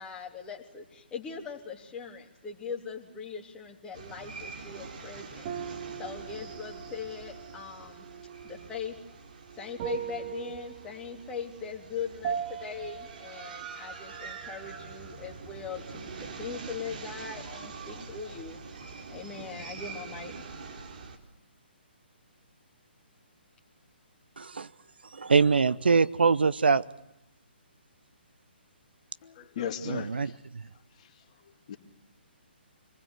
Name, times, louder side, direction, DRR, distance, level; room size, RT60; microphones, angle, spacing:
voice 1, 0.0-8.1 8.4-9.0 9.6-20.3, left 6 dB, 15° left, 0 dB, 3.3 m, -40 dB
sound 1, 3.9-21.2, right 4 dB, 50° right, 4.0 m, -45 dB
sound 2, 5.4-15.3 15.6-16.3, right 8 dB, 30° right, 2.7 m, -41 dB
voice 2, 24.4-24.7 25.1-26.8 29.9-30.3, right 5 dB, 65° right, 16 dB, 0.9 m, -23 dB
voice 3, 29.2-30.4 30.9-31.8, left 8 dB, 35° left, 6 dB, 2.5 m, -39 dB
26.0 x 20.5 x 8.1 m, 0.85 s
figure-of-eight pair, 135°, 6 cm